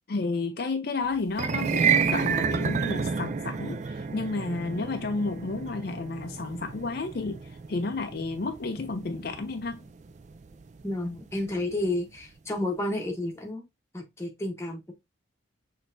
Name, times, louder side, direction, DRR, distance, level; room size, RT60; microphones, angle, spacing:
voice 1, 0.1-9.8, left 3 dB, 50° left, 0.5 m, -32 dB
sound 1, 1.3-11.6, right 6 dB, 35° right, 0.3 m, -30 dB
voice 2, 10.8-13.6 13.9-14.9, left 1 dB, 15° left, 0.9 m, -31 dB
6.2 x 3.3 x 2.6 m
head